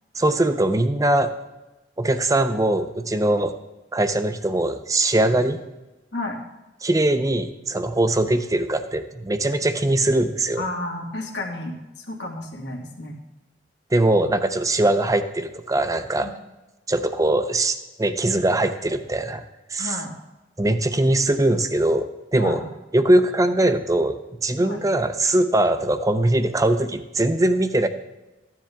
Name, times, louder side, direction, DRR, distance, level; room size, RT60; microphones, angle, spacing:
voice 1, 0.1-1.3 2.0-3.5 3.9-5.6 6.8-10.6 13.9-16.3 16.9-19.4 19.7-20.0 20.6-22.6 22.9-24.2 24.4-27.9, right 1 dB, 20° right, 9 dB, 0.7 m, -21 dB
voice 2, 10.6-13.2 16.2-16.3 19.8-20.1 22.4-22.6 24.6-24.8, left 2 dB, 75° left, 1 dB, 2.2 m, -32 dB
14.0 x 10.5 x 3.6 m, 1.0 s
head